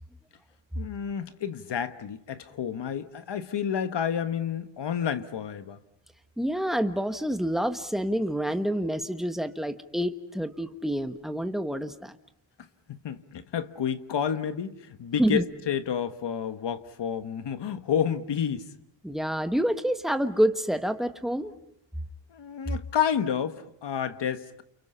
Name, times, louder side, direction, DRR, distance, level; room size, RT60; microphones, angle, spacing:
voice 1, 0.7-5.8 12.9-18.6 22.3-24.6, left 8 dB, 60° left, 1.5 m, -30 dB
voice 2, 6.4-12.1 15.2-15.4 19.0-21.5, equal, ahead, 1.3 m, -27 dB
29.5 x 29.0 x 5.6 m
wide cardioid pair, 145°, 47 cm